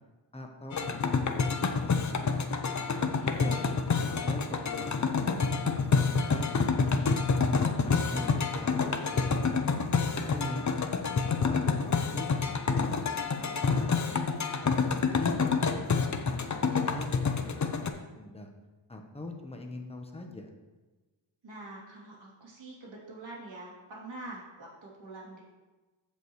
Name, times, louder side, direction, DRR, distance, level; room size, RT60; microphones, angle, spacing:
voice 1, 0.3-2.4 2.9-3.6 4.0-7.1 7.6-13.0 13.6-14.0 14.6-17.9 18.1-18.5 18.9-20.5, left 1 dB, 15° left, 3 dB, 1.0 m, -43 dB
sound 1, 0.7-17.9, left 5 dB, 40° left, 0.7 m, -28 dB
voice 2, 2.8-3.7 13.3-14.4 21.4-25.4, right 2 dB, 75° right, -5 dB, 3.1 m, -46 dB
15.0 x 5.3 x 3.2 m, 1.2 s
wide cardioid pair, 110°, 45 cm